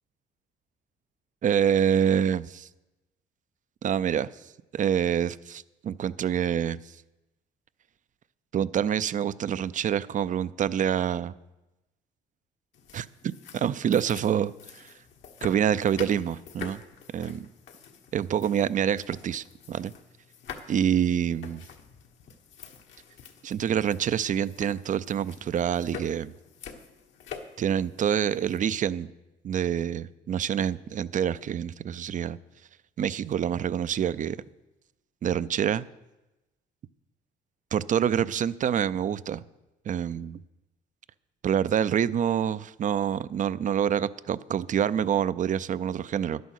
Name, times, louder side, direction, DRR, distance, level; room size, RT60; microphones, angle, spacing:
voice 1, 1.4-2.7 3.8-4.3 4.7-6.8 8.5-11.3 12.9-14.9 15.4-16.8 17.1-17.5 18.1-19.9 20.7-21.6 23.4-26.3 27.6-29.1 29.4-32.4 33.0-34.4 35.2-35.8 37.7-39.4 39.9-40.4 41.4-46.4, right 9 dB, 40° right, 17 dB, 0.5 m, -26 dB
sound 1, 12.7-28.6, left 7 dB, 70° left, 1.4 m, -46 dB
11.0 x 9.3 x 6.4 m, 1.0 s
cardioid pair, 90°, 19 cm